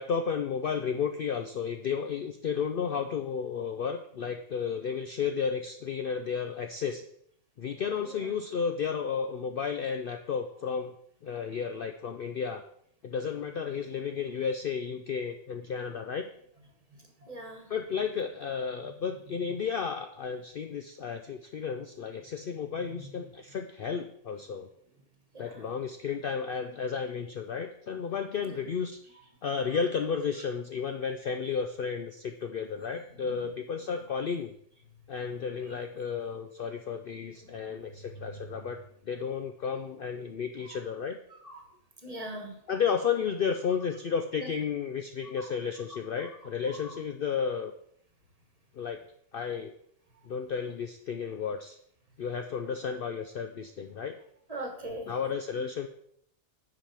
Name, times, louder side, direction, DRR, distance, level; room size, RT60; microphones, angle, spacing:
voice 1, 0.0-7.0 7.6-10.9 11.2-12.6 13.0-16.3 17.7-24.7 25.4-34.5 35.1-38.8 39.1-41.2 42.7-47.7 48.7-49.0 49.3-49.7 50.2-51.8 52.2-54.2 55.1-55.9, left 6 dB, 55° left, 6 dB, 0.6 m, -33 dB
voice 2, 16.9-17.7 19.5-19.6 22.8-23.2 25.3-25.7 28.4-28.6 33.2-33.5 37.4-38.5 40.6-40.8 41.3-41.7 42.0-42.6 44.3-44.5 45.4-45.5 45.9-46.3 46.7-46.9 54.5-55.1 55.5-55.7, right 1 dB, 30° right, 2 dB, 1.4 m, -43 dB
8.9 x 5.2 x 5.7 m, 0.68 s
omnidirectional pair, 1.4 m